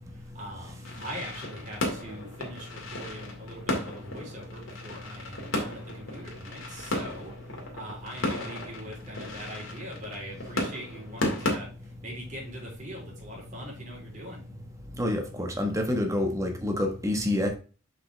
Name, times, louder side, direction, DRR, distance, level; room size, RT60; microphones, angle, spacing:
voice 1, 0.1-11.7 12.0-14.4, equal, 40° right, 3.4 m, -42 dB
sound 1, 0.8-11.5, left 1 dB, 85° left, 2.2 m, -35 dB
voice 2, 15.0-17.5, left 1 dB, 15° right, 1.3 m, -27 dB
6.9 x 5.3 x 3.3 m
head